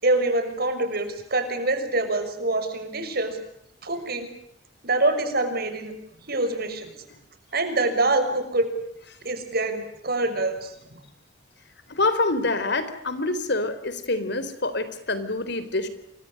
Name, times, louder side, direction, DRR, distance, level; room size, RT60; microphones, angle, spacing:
voice 1, 0.0-3.4 3.8-4.3 4.8-5.9 6.3-6.9 7.5-8.7 9.2-10.7, right 2 dB, 55° right, 8 dB, 6.4 m, -25 dB
voice 2, 11.9-15.9, left 2 dB, 65° left, 12 dB, 4.0 m, -26 dB
29.0 x 24.5 x 6.7 m, 0.73 s
head